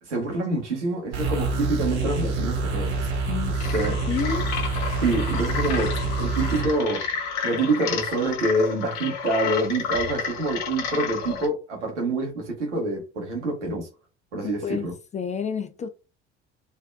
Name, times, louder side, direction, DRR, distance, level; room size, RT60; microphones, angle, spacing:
voice 1, 0.0-3.1 3.7-4.0 5.0-7.1 7.4-13.9 14.3-14.9, right 2 dB, 80° right, 1.3 m, -26 dB
sound 1, 1.1-6.7, right 3 dB, 55° right, 1.2 m, -26 dB
voice 2, 3.3-4.5 14.4-15.9, left 7 dB, 20° left, 0.4 m, -31 dB
sound 2, 3.5-11.5, left 6 dB, 50° left, 1.1 m, -31 dB
3.2 x 2.7 x 2.3 m
figure-of-eight pair, 60°, 35 cm